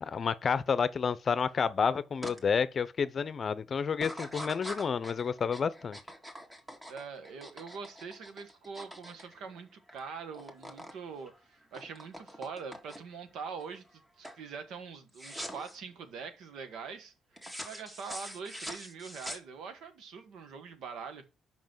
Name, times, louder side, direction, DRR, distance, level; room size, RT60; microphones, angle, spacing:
voice 1, 0.0-6.0, left 6 dB, 45° left, 0.7 m, -30 dB
sound 1, 2.2-2.4 2.8-3.3 3.9-10.0 10.2-11.0 11.3-13.2 13.7-14.0 14.2-14.5 15.1-15.7 17.4-19.9, equal, 15° right, 1.8 m, -44 dB
voice 2, 6.9-17.1 17.6-21.2, right 5 dB, 80° right, 1.4 m, -43 dB
5.4 x 5.3 x 6.1 m
cardioid pair, 90°, 0 cm